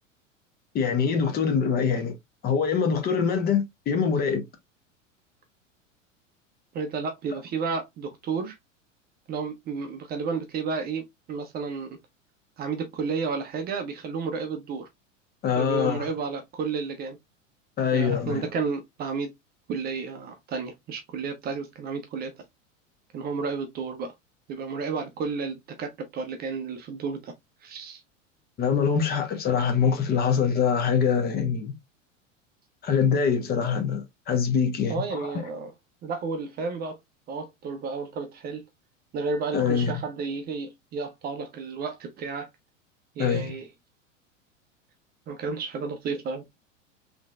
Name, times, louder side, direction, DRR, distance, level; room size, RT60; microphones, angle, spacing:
voice 1, 0.7-2.1 2.4-4.5 15.4-16.1 17.8-18.5 28.6-31.8 32.8-35.3 39.5-39.9 43.2-43.5, left 6 dB, 25° left, 0.9 m, -24 dB
voice 2, 6.7-8.6 9.3-12.0 12.6-14.9 15.6-17.2 17.9-19.3 19.7-22.3 23.1-24.1 24.5-27.3 27.6-28.0 34.9-35.7 36.0-37.0 37.3-38.6 39.1-42.5 43.2-43.7 45.3-46.4, right 4 dB, 25° right, 0.7 m, -32 dB
3.7 x 3.4 x 2.3 m
figure-of-eight pair, 85°, 39 cm